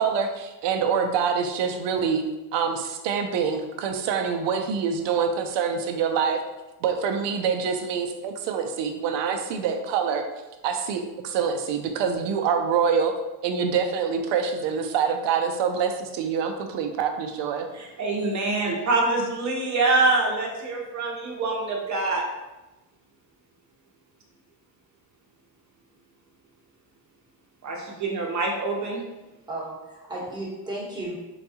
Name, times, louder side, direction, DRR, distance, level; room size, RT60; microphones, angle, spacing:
voice 1, 0.0-2.2 2.5-6.4 6.8-10.2 10.6-13.1 13.4-17.7, right 6 dB, 70° right, 5 dB, 0.6 m, -25 dB
voice 2, 17.7-22.2 27.6-29.0, right 3 dB, 40° right, 0 dB, 0.9 m, -25 dB
voice 3, 29.5-31.2, right 1 dB, 10° right, -6 dB, 1.1 m, -34 dB
3.9 x 2.3 x 2.8 m, 1.0 s
cardioid pair, 100°, 45 cm